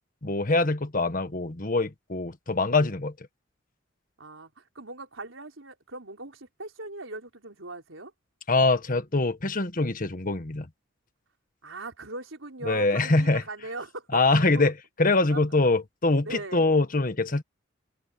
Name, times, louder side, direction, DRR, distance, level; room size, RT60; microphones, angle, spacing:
voice 1, 0.2-3.1 8.5-10.7 12.6-13.4 14.1-17.4, left 3 dB, 45° left, 1.5 m, -24 dB
voice 2, 4.2-8.1 11.6-14.7 15.3-15.4 16.2-16.7, right 2 dB, 80° right, 4.3 m, -40 dB
head